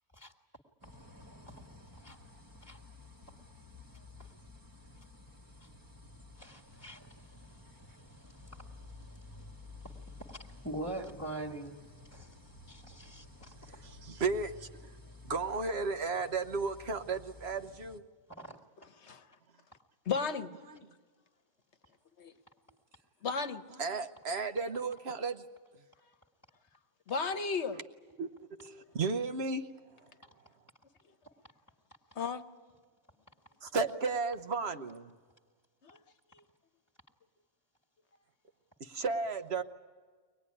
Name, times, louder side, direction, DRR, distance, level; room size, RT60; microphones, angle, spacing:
sound 1, 0.8-18.0, left 2 dB, 15° right, 1.2 m, -53 dB
voice 1, 6.4-7.0 8.4-8.6 9.8-10.0 10.3-10.4 10.6-11.8 12.1-12.3 12.7-13.5 18.4-18.5, right 1 dB, 10° left, -3 dB, 1.6 m, -42 dB
voice 2, 13.8-14.7 15.3-18.0 20.7-20.8 23.8-25.4 28.2-29.7 33.6-35.1 38.8-39.6, right 4 dB, 50° right, 8 dB, 1.1 m, -34 dB
voice 3, 20.1-20.5 22.2-22.3 23.2-23.6 27.1-27.8 32.2-32.4 35.8-36.0 36.3-36.4, left 5 dB, 55° left, 9 dB, 1.2 m, -34 dB
24.0 x 19.5 x 9.8 m, 1.5 s
omnidirectional pair, 1.5 m